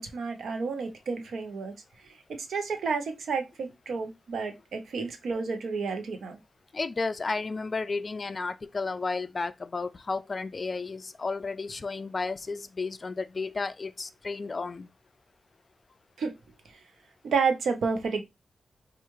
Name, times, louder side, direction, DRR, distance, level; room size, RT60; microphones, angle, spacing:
voice 1, 0.0-1.7 2.4-6.4 16.2-16.3 17.2-18.2, right 5 dB, 80° right, 0.8 m, -30 dB
voice 2, 6.7-14.9, left 4 dB, 35° left, 0.3 m, -33 dB
4.5 x 2.4 x 3.0 m
wide cardioid pair, 110°, 0 cm